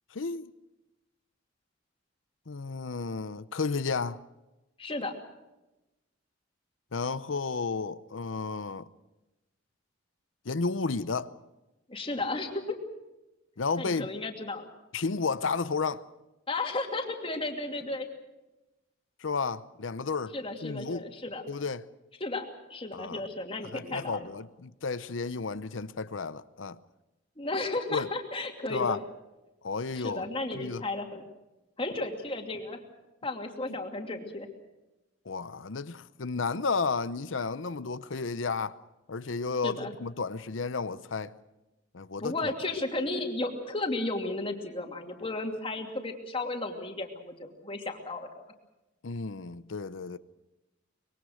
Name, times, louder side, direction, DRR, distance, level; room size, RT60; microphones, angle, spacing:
voice 1, 0.1-0.5 2.5-4.2 6.9-8.9 10.4-11.3 13.6-14.1 14.9-16.0 19.2-20.3 20.6-21.1 21.5-21.8 22.9-23.2 23.7-26.8 27.9-28.1 28.7-29.0 29.6-30.3 30.5-30.8 35.3-38.8 39.1-41.3 41.9-42.3 49.0-50.2, left 4 dB, 90° left, 0.8 m, -32 dB
voice 2, 4.8-5.1 11.9-12.8 13.8-14.7 16.5-18.1 20.3-21.4 22.2-24.3 27.4-29.0 29.9-31.2 31.8-32.8 33.2-34.5 39.6-39.9 42.2-48.3, left 2 dB, 30° left, 2.7 m, -34 dB
24.5 x 22.0 x 6.5 m
head